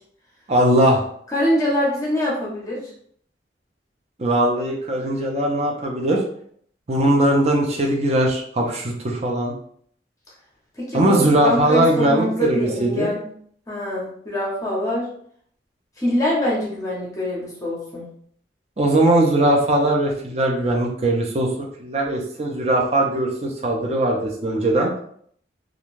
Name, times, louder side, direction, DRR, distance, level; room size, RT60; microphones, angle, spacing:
voice 1, 0.5-1.1 4.2-6.2 6.9-9.5 10.9-13.1 18.8-21.5 21.8-25.0, right 1 dB, 35° right, 0 dB, 0.5 m, -20 dB
voice 2, 1.3-2.8 10.8-13.3 13.7-15.1 16.0-18.1, left 1 dB, 20° left, -5 dB, 0.7 m, -24 dB
2.5 x 2.2 x 3.1 m, 0.63 s
head